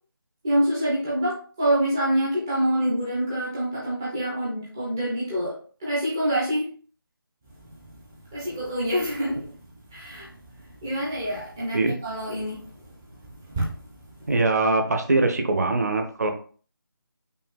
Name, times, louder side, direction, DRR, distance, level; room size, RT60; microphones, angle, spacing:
voice 1, 0.4-6.7 7.6-7.9 8.3-9.6 9.9-14.3, right 1 dB, 10° right, -7 dB, 0.4 m, -27 dB
voice 2, 14.3-16.3, right 2 dB, 45° right, 6 dB, 0.7 m, -22 dB
5.5 x 2.3 x 3.6 m, 0.42 s
figure-of-eight pair, 160°, 12 cm